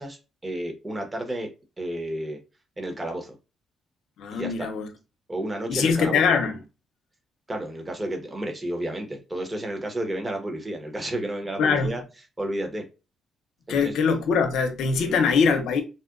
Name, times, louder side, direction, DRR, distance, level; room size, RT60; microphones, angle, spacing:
voice 1, 0.0-1.5 1.8-2.4 2.8-3.3 4.3-4.7 5.3-6.2 7.5-12.0 12.4-12.8 13.7-13.9 15.0-15.2, right 1 dB, 20° right, 0.9 m, -31 dB
voice 2, 4.2-4.9 5.7-6.6 11.6-12.0 13.7-15.8, left 5 dB, 80° left, 0.6 m, -22 dB
4.0 x 2.2 x 2.4 m
cardioid pair, 90°, 0 cm